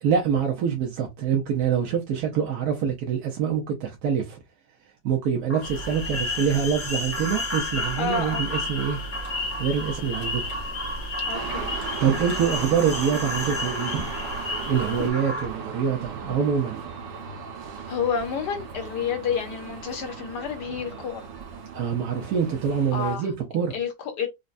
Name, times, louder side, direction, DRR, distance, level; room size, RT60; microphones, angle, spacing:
voice 1, 0.0-4.4 5.0-9.0 9.6-10.4 12.0-14.1 14.7-17.0 21.7-23.8, right 7 dB, 65° right, 1.1 m, -25 dB
sound 1, 5.5-15.5, equal, 10° left, 0.8 m, -35 dB
sound 2, 5.6-15.1, left 2 dB, 85° left, 1.6 m, -33 dB
voice 2, 8.0-8.4 11.3-11.7 17.9-21.3 22.9-23.3 23.7-24.3, left 6 dB, 70° left, 1.5 m, -29 dB
sound 3, 11.3-23.2, right 6 dB, 90° right, 1.5 m, -37 dB
5.2 x 2.2 x 2.4 m
omnidirectional pair, 1.9 m